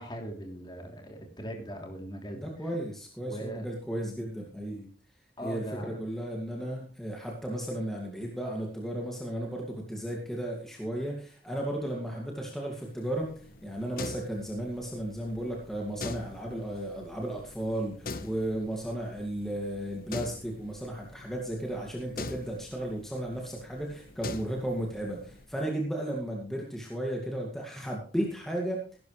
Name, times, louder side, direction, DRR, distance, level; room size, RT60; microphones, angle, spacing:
voice 1, 0.0-2.7 3.2-3.6 5.4-6.0, right 1 dB, 25° left, 2 dB, 3.1 m, -40 dB
voice 2, 2.3-4.9 5.4-28.8, right 1 dB, ahead, -1 dB, 2.2 m, -34 dB
sound 1, 12.9-25.5, left 3 dB, 55° left, 1.1 m, -44 dB
16.5 x 12.0 x 3.2 m, 0.42 s
head